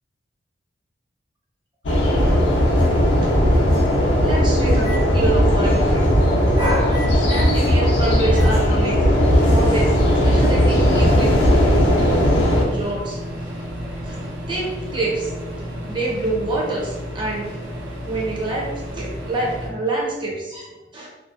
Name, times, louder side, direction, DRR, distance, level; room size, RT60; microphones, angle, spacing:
sound 1, 1.9-12.6, equal, 80° left, 0.5 m, -17 dB
Microwave oven, 4.0-5.0 6.4-7.5 7.9-19.7, equal, 70° right, 0.8 m, -33 dB
voice 1, 4.2-6.0 6.5-9.1 9.4-10.0 10.2-11.3 12.7-13.2 14.1-15.3 15.9-17.5 18.0-18.7 18.9-21.1, right 2 dB, 25° right, -3 dB, 0.5 m, -26 dB
2.5 x 2.0 x 2.4 m, 1.1 s
head